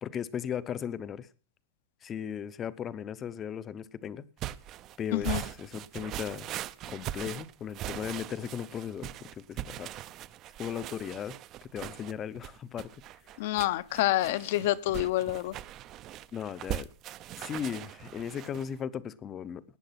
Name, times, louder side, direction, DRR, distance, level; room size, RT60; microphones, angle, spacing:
voice 1, 0.0-1.3 2.0-4.3 5.0-6.5 6.9-9.9 10.6-11.4 11.7-12.9 16.3-16.9 17.4-19.6, left 8 dB, 20° left, 0.8 m, -37 dB
sound 1, 4.4-18.7, right 13 dB, 30° right, 0.6 m, -40 dB
voice 2, 5.1-5.4 13.4-15.5, left 15 dB, 55° left, 0.9 m, -28 dB
18.5 x 9.0 x 5.9 m
supercardioid pair, 170°, 0 cm